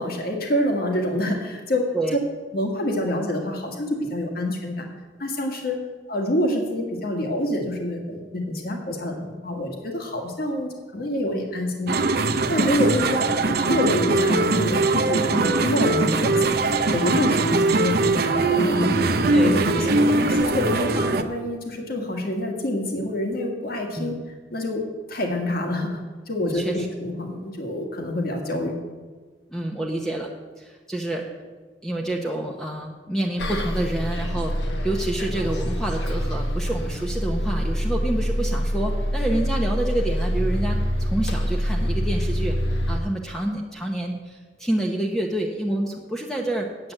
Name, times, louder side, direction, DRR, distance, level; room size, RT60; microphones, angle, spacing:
voice 1, 0.0-1.9 2.5-4.9 5.2-5.8 6.1-12.0 12.5-13.2 13.7-16.6 16.9-18.9 19.3-24.2 24.5-26.0 26.3-28.7, left 1 dB, 55° left, 2 dB, 1.7 m, -26 dB
sound 1, 11.9-21.2, right 3 dB, 60° right, 0.7 m, -21 dB
voice 2, 19.3-19.8 24.0-24.2 26.4-26.9 29.5-30.3 30.6-31.2 31.8-34.5 34.8-46.9, right 1 dB, 5° left, -1 dB, 0.8 m, -28 dB
Bus, 33.4-43.0, equal, 80° left, 1.2 m, -25 dB
8.7 x 7.7 x 7.8 m, 1.4 s
head